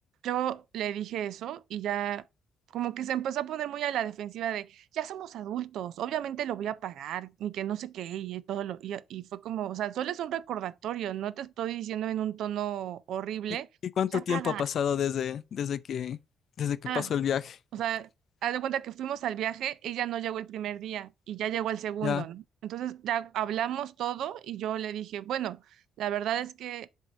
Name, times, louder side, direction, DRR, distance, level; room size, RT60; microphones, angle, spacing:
voice 1, 0.2-2.2 2.7-13.7 14.1-14.6 16.9-17.1 17.7-18.1 18.4-25.6 26.0-26.9, right 11 dB, 80° right, 0.4 m, -33 dB
voice 2, 14.0-16.2 16.6-17.6 22.0-22.3, left 8 dB, 65° left, 0.4 m, -29 dB
7.6 x 2.8 x 5.0 m
cardioid pair, 90°, 0 cm